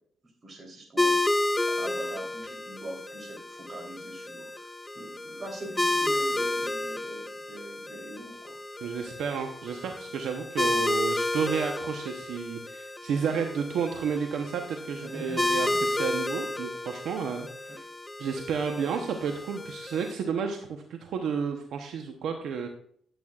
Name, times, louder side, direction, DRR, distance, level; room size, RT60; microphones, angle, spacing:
voice 1, 0.2-1.2 1.7-8.6 10.7-11.0 15.0-15.9 17.7-17.8 18.7-19.0, right 1 dB, 40° right, 1 dB, 3.3 m, -43 dB
sound 1, 1.0-20.1, left 2 dB, 15° left, 0.4 m, -31 dB
voice 2, 8.8-17.8 18.2-22.7, right 6 dB, 75° right, 4 dB, 0.8 m, -31 dB
12.5 x 8.1 x 2.4 m, 0.64 s
cardioid pair, 70°, 0 cm